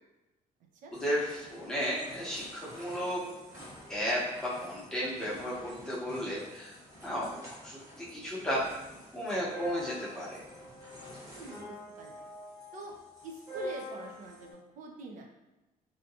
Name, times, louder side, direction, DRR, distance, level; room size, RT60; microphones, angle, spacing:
voice 1, 0.9-3.2 3.9-6.7 7.0-7.3 7.6-8.7 9.1-10.4, equal, 5° left, -8 dB, 0.8 m, -34 dB
sound 1, 0.9-14.5, equal, 25° right, 0.9 m, -46 dB
voice 2, 11.3-12.3 12.7-13.0 13.2-15.3, right 2 dB, 65° right, 2 dB, 0.5 m, -45 dB
2.7 x 2.2 x 2.7 m, 1.0 s
cardioid pair, 155°, 14 cm